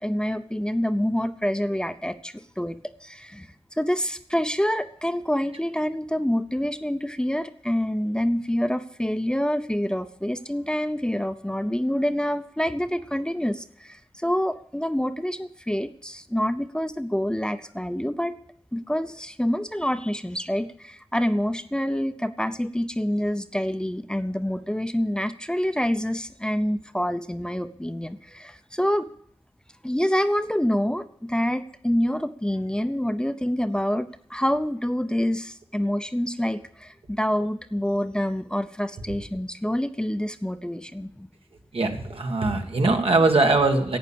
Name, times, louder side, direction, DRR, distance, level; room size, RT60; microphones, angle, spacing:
voice 1, 0.0-18.4 18.7-29.1 29.8-41.3, equal, 10° left, 10 dB, 0.7 m, -27 dB
voice 2, 41.7-44.0, right 3 dB, 70° right, 3 dB, 1.7 m, -21 dB
11.5 x 8.8 x 8.6 m, 0.67 s
wide cardioid pair, 90°, 10 cm